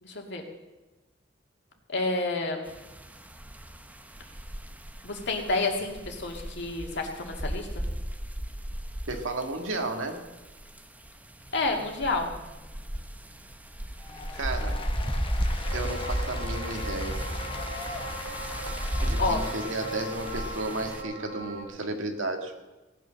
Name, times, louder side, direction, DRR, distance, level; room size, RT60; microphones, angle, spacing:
voice 1, 0.0-0.4 1.9-2.7 5.0-7.8 11.5-12.3 19.2-19.4, left 3 dB, 65° left, 2 dB, 2.3 m, -29 dB
sound 1, 2.7-21.0, equal, 10° right, 0.7 m, -35 dB
voice 2, 9.1-10.2 14.3-14.8 15.7-17.2 19.0-22.5, right 2 dB, 85° right, 4 dB, 1.8 m, -33 dB
Applause, 14.0-21.0, left 3 dB, 30° left, 1.2 m, -42 dB
sound 2, 15.6-21.6, right 1 dB, 55° right, 2.8 m, -37 dB
17.0 x 9.3 x 6.4 m, 1.1 s
head